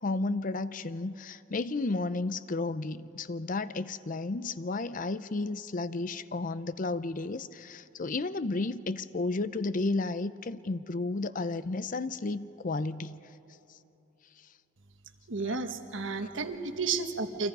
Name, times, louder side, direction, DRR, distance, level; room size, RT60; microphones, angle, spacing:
voice 1, 0.0-13.2 15.4-15.6 16.2-16.3, left 3 dB, 40° left, 14 dB, 0.6 m, -32 dB
voice 2, 15.3-17.5, right 4 dB, 70° right, 7 dB, 1.4 m, -32 dB
28.5 x 26.0 x 5.4 m, 3.0 s
head